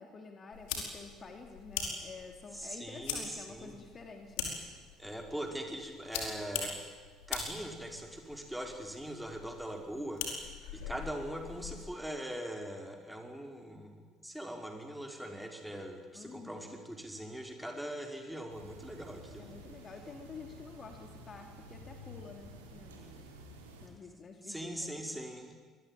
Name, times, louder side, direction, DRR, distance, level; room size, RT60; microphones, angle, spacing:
voice 1, 0.0-4.6 16.1-16.8 19.4-23.2 23.8-25.2, left 4 dB, 35° left, 5 dB, 2.9 m, -49 dB
sound 1, 0.5-11.9, left 6 dB, 65° left, 5.1 m, -42 dB
voice 2, 2.5-3.8 5.0-6.8 7.3-10.2 10.7-13.9 14.2-19.5 24.5-25.6, equal, 5° right, 3 dB, 5.2 m, -41 dB
sound 2, 18.5-23.9, right 1 dB, 75° right, 4.0 m, -51 dB
26.0 x 21.0 x 9.3 m, 1.5 s
figure-of-eight pair, 55°, 0 cm